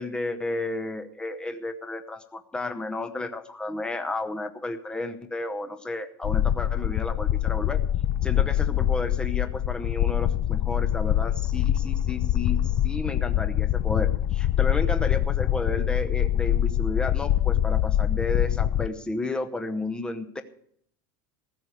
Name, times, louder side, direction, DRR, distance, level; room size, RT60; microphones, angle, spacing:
voice 1, 0.0-7.8 8.2-20.4, left 2 dB, 5° left, 9 dB, 0.8 m, -32 dB
sound 1, 6.2-18.9, left 11 dB, 30° left, 0.4 m, -24 dB
15.0 x 6.4 x 8.4 m, 0.66 s
supercardioid pair, 160°, 12 cm